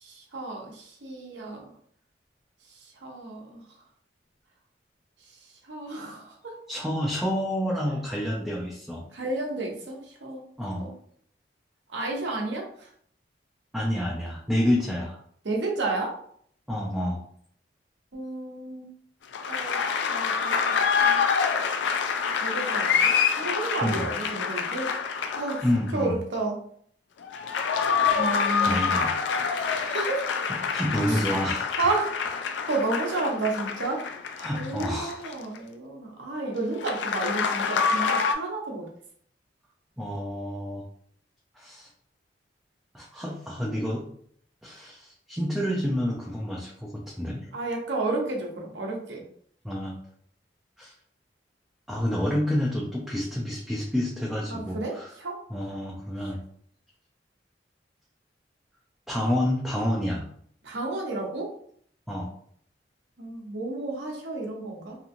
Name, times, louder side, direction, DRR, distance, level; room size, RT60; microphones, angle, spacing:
voice 1, 0.0-1.7 3.0-3.6 5.7-6.5 9.1-10.4 10.8-10.9 11.9-12.6 15.4-16.1 18.1-18.9 19.5-21.2 22.4-24.9 25.3-26.5 28.2-28.9 29.4-30.3 31.1-31.2 31.8-32.2 32.7-34.0 34.5-38.9 47.5-49.2 54.5-55.4 60.6-61.5 63.2-65.0, right 2 dB, 80° right, 0 dB, 0.8 m, -31 dB
voice 2, 6.7-9.0 10.6-10.9 13.7-15.2 16.7-17.2 23.8-24.1 25.6-26.2 28.6-29.9 30.5-31.7 34.4-35.2 40.0-40.8 41.5-41.9 42.9-44.0 44.6-47.5 49.6-50.0 50.8-50.9 51.9-55.1 55.5-56.4 59.1-60.3 62.1-62.3, equal, ahead, -3 dB, 0.4 m, -29 dB
sound 1, 19.3-25.9 27.2-35.6 36.8-38.3, left 6 dB, 75° left, 0.3 m, -26 dB
2.8 x 2.6 x 2.5 m, 0.62 s
head